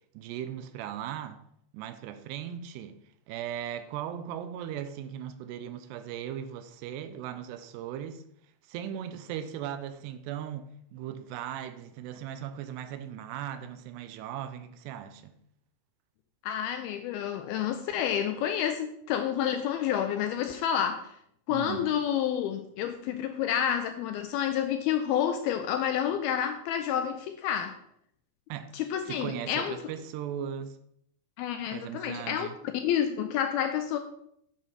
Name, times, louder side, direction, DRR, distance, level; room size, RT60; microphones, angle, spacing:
voice 1, 0.1-1.4 1.7-3.0 3.3-8.2 8.7-15.4 21.5-21.9 28.5-28.7 29.1-30.8 31.7-32.6, right 10 dB, 80° right, 2.7 m, -38 dB
voice 2, 16.4-21.2 21.5-27.8 28.7-29.8 31.4-32.5 32.7-34.0, left 9 dB, 80° left, 2.2 m, -29 dB
9.2 x 7.5 x 4.9 m
omnidirectional pair, 4.9 m